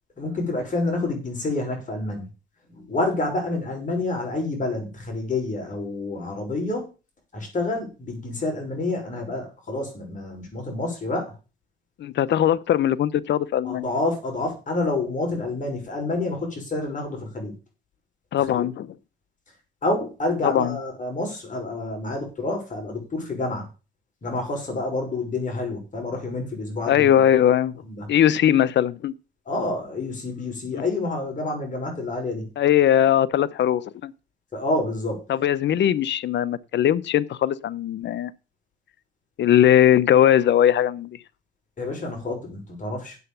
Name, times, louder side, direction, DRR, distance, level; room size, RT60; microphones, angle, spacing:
voice 1, 0.2-2.3 2.7-6.9 7.3-11.3 13.6-17.5 18.4-18.7 19.8-23.7 24.2-27.1 27.8-28.1 29.5-32.5 34.5-35.2 41.8-43.2, left 2 dB, 40° left, 5.9 m, -28 dB
voice 2, 12.0-13.9 18.3-18.9 20.4-20.8 26.9-27.7 28.1-29.1 30.7-30.8 32.6-34.1 35.3-38.3 39.4-41.2, left 10 dB, 65° left, 0.8 m, -20 dB
8.2 x 7.8 x 6.9 m
cardioid pair, 90°, 20 cm